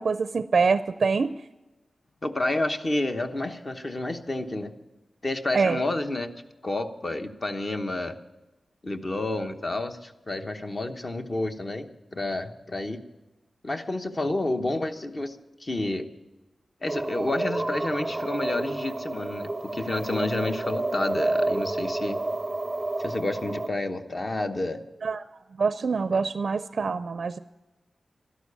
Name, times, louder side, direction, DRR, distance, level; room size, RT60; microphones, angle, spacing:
voice 1, 0.0-1.3 5.5-5.8 25.0-25.2 25.6-27.4, right 4 dB, 60° right, 12 dB, 0.4 m, -25 dB
voice 2, 2.2-4.7 5.2-6.3 6.6-8.2 8.8-13.0 13.6-16.1 16.8-22.2 23.0-24.8 26.1-26.2, left 2 dB, 35° left, 6 dB, 1.0 m, -30 dB
sound 1, 16.9-23.7, right 2 dB, 20° right, 0.6 m, -30 dB
12.5 x 11.5 x 8.4 m, 1.1 s
wide cardioid pair, 130°, 0 cm